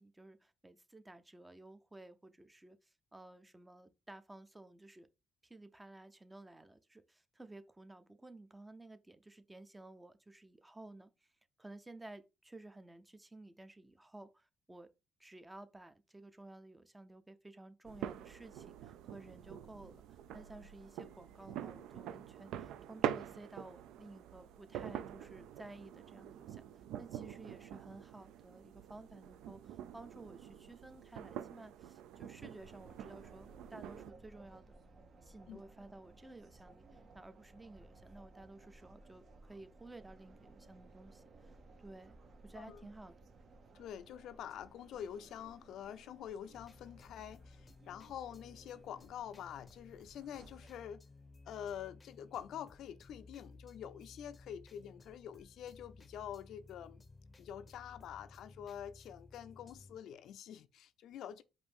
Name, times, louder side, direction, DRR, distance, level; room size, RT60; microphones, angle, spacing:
voice 1, 0.0-5.1 5.4-11.3 11.6-14.9 15.2-34.8 35.2-42.2 42.4-43.2, right 2 dB, 15° right, 0.5 m, -54 dB
sound 1, 17.8-34.1, right 10 dB, 90° right, 0.3 m, -45 dB
sound 2, 32.6-50.7, right 3 dB, 55° right, 0.7 m, -60 dB
voice 2, 42.5-42.9 43.7-51.0 51.5-57.0 57.4-61.4, left 9 dB, 75° left, 0.4 m, -47 dB
sound 3, 46.5-60.0, left 3 dB, 30° left, 0.6 m, -58 dB
5.0 x 2.6 x 3.5 m
cardioid pair, 90°, 0 cm